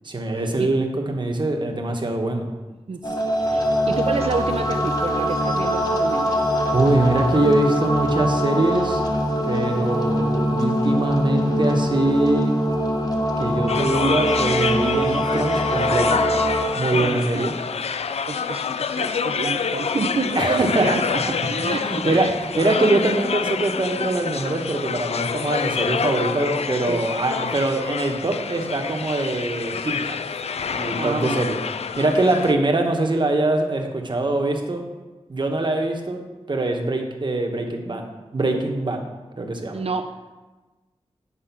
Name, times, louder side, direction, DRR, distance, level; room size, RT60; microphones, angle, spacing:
voice 1, 0.0-2.5 6.7-9.0 9.5-12.5 13.4-16.2 16.8-17.5 20.3-20.9 21.6-30.2 30.7-31.6 32.0-34.8 35.3-36.2 36.5-38.0 38.3-39.0 39.4-39.8, right 2 dB, 45° right, 3 dB, 1.3 m, -23 dB
sound 1, 3.0-16.6, equal, 35° left, 1.4 m, -23 dB
voice 2, 3.4-6.4 16.9-17.5 18.3-22.3 26.9-27.0 31.0-31.4 39.7-40.1, right 4 dB, 65° right, 8 dB, 0.7 m, -29 dB
sound 2, 13.7-32.5, left 6 dB, 80° left, 0.4 m, -27 dB
9.9 x 4.7 x 6.0 m, 1.2 s
wide cardioid pair, 70°, 11 cm